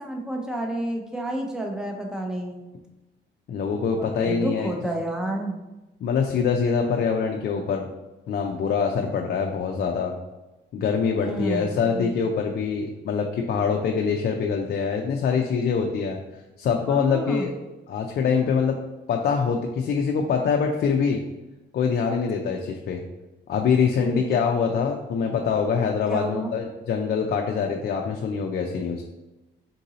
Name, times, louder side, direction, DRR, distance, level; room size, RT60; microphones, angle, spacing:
voice 1, 0.0-2.7 3.9-5.6 11.2-12.2 16.9-17.5 23.9-24.5 26.1-26.5, right 1 dB, 5° right, 1 dB, 0.7 m, -30 dB
voice 2, 3.5-4.7 6.0-7.9 8.3-10.1 10.7-16.2 16.6-17.5 17.9-18.8 19.1-21.2 21.7-23.0 23.5-29.0, left 6 dB, 55° left, 2 dB, 0.4 m, -24 dB
3.8 x 2.7 x 3.9 m, 1.0 s
cardioid pair, 90°, 20 cm